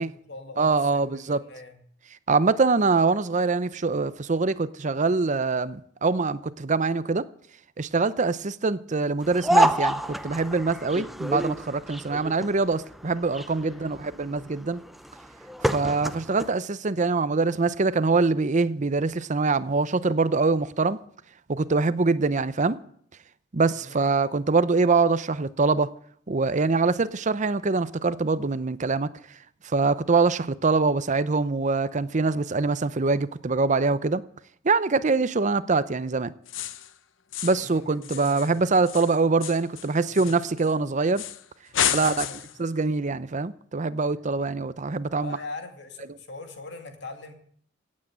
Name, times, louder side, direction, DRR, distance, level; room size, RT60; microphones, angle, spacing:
voice 1, 0.0-1.8 13.6-14.0 23.7-24.0 37.5-38.9 40.1-40.4 41.8-42.4 45.2-47.3, left 3 dB, 65° left, 2.6 m, -42 dB
voice 2, 0.6-1.4 2.3-7.2 7.8-14.8 15.6-21.0 21.5-22.8 23.5-25.9 26.3-29.1 29.7-34.2 34.6-36.3 37.4-41.2 41.9-42.3 42.6-45.4, right 3 dB, 40° right, 0.6 m, -24 dB
sound 1, 9.2-16.5, equal, ahead, 0.6 m, -28 dB
sound 2, 36.5-36.9 37.3-37.7 38.0-40.7 41.2-41.4 41.7-42.6, left 10 dB, 90° left, 0.9 m, -31 dB
17.0 x 8.6 x 8.7 m
head